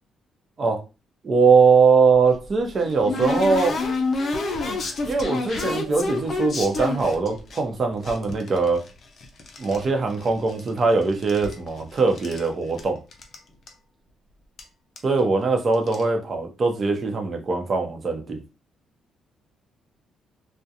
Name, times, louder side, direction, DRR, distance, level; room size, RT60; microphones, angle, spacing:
voice 1, 1.2-3.8 5.1-8.9 9.6-13.0 15.0-18.4, right 4 dB, 40° right, 0.6 m, -21 dB
sound 1, 2.1-7.6 8.0-9.8 10.1-10.9 11.1-12.5 12.8-12.9 13.1-13.4 13.7-13.8 14.6-14.7 15.0-15.2 15.7-16.0, left 3 dB, 50° left, 0.6 m, -29 dB
2.4 x 2.1 x 2.7 m
cardioid pair, 90°, 0 cm